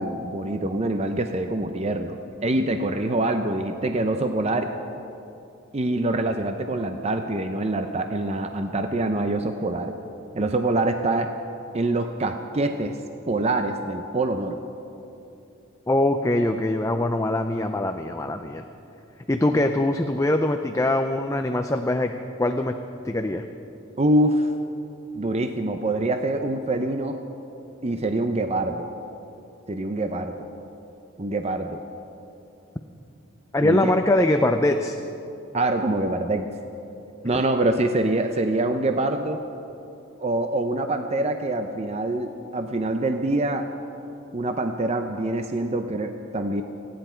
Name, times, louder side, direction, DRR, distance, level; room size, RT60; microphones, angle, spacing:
voice 1, 0.0-2.2 2.4-4.7 5.7-9.9 10.3-11.3 11.7-13.0 13.3-14.6 24.0-24.5 25.1-27.2 27.8-28.9 29.7-30.5 31.2-31.8 33.6-33.9 35.5-36.5 37.2-39.4 40.2-43.6 44.3-46.6, right 2 dB, 30° right, 6 dB, 0.6 m, -25 dB
voice 2, 15.9-18.6 19.3-22.1 22.4-22.7 23.0-23.4 33.5-35.0, left 1 dB, 15° left, 5 dB, 0.5 m, -22 dB
29.0 x 10.5 x 4.5 m, 2.8 s
head